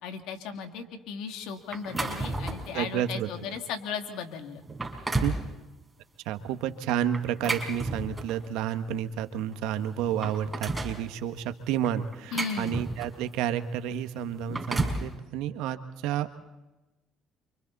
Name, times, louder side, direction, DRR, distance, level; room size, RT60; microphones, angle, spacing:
voice 1, 0.0-4.6 12.3-12.8, left 6 dB, 80° left, 6 dB, 2.6 m, -36 dB
sound 1, 1.7-2.8 3.3-3.5 4.1-4.2 4.6-5.4 7.1-8.5 9.5-9.6 9.9-11.0 11.8-13.3 14.3-15.1, right 2 dB, 15° right, 5.2 m, -32 dB
voice 2, 2.7-3.5 5.2-5.3 6.2-16.4, right 10 dB, 85° right, 9 dB, 1.5 m, -30 dB
29.5 x 25.5 x 4.2 m, 1.0 s
supercardioid pair, 85°, 0 cm